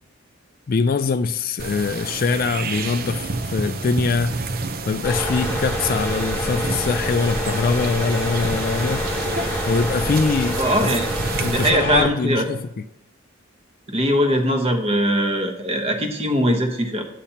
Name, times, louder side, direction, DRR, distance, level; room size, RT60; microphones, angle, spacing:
voice 1, 0.7-4.4 4.9-9.1 9.7-11.0 11.4-12.8, left 4 dB, 45° left, 0.3 m, -23 dB
sound 1, 1.6-11.7, right 3 dB, 45° right, 0.6 m, -30 dB
sound 2, 5.0-12.1, equal, 10° left, 1.2 m, -26 dB
voice 2, 10.6-11.1 11.5-12.5 13.9-17.0, equal, 30° right, 1.0 m, -21 dB
10.0 x 8.3 x 2.8 m
head